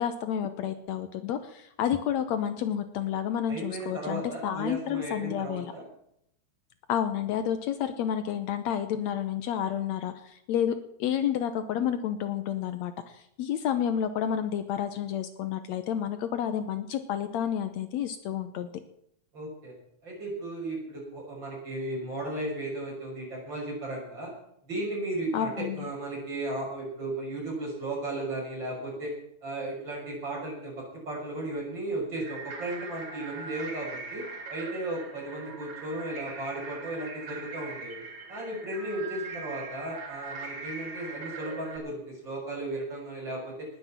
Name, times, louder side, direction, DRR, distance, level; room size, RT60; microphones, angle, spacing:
voice 1, 0.0-5.7 6.9-18.8 25.3-25.8, left 9 dB, 70° left, 10 dB, 2.0 m, -30 dB
voice 2, 3.5-5.9 19.3-19.7 20.0-24.3 24.7-29.1 29.4-30.7 31.1-34.2 34.5-38.0 38.3-43.7, right 1 dB, 35° right, -3 dB, 7.1 m, -35 dB
sound 1, 32.2-41.8, right 4 dB, 70° right, 4.3 m, -41 dB
19.5 x 7.9 x 7.3 m, 0.74 s
omnidirectional pair, 3.4 m